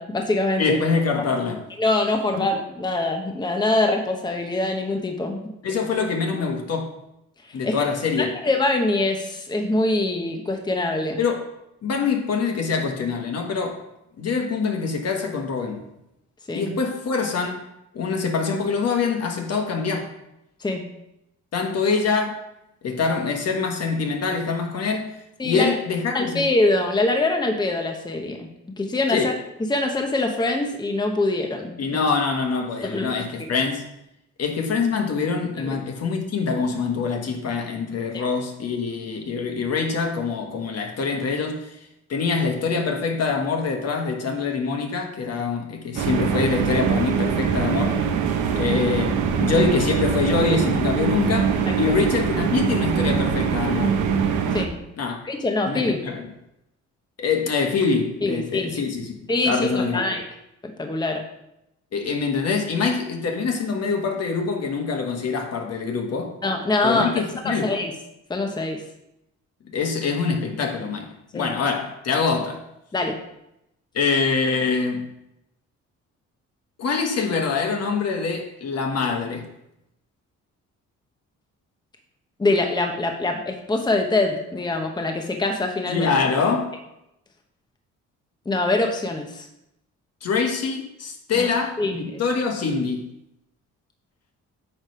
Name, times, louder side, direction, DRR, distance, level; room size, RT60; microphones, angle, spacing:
voice 1, 0.0-0.8 1.2-1.3 1.8-5.4 7.6-7.9 8.2-11.2 16.5-16.7 20.6-20.8 25.4-25.7 26.1-28.5 28.8-29.3 29.7-31.8 32.8-33.2 35.6-35.8 38.1-38.2 51.7-52.0 54.5-54.7 55.3-56.0 58.2-58.7 59.3-60.2 60.6-61.2 66.4-67.1 67.4-67.9 68.3-68.8 71.3-71.5 72.9-73.2 82.4-86.1 88.5-89.5 91.3-91.5 91.8-92.0, left 2 dB, 15° left, 0.9 m, -24 dB
voice 2, 0.6-1.6 2.3-2.5 5.6-6.9 7.5-8.3 11.2-11.5 11.8-13.8 14.2-15.8 16.5-17.6 17.9-20.1 21.5-22.4 22.8-25.1 25.4-26.5 29.1-29.3 31.8-33.9 34.4-41.8 42.1-48.0 48.6-54.0 55.0-55.2 55.6-56.2 57.2-59.1 59.4-60.2 61.9-66.3 66.8-67.8 69.7-72.6 73.9-75.1 76.8-79.5 85.9-86.7 90.2-93.1, left 5 dB, 55° left, 1.3 m, -24 dB
sound 1, 46.0-54.7, right 7 dB, 80° right, 0.9 m, -23 dB
8.8 x 3.3 x 5.7 m
cardioid pair, 90°, 30 cm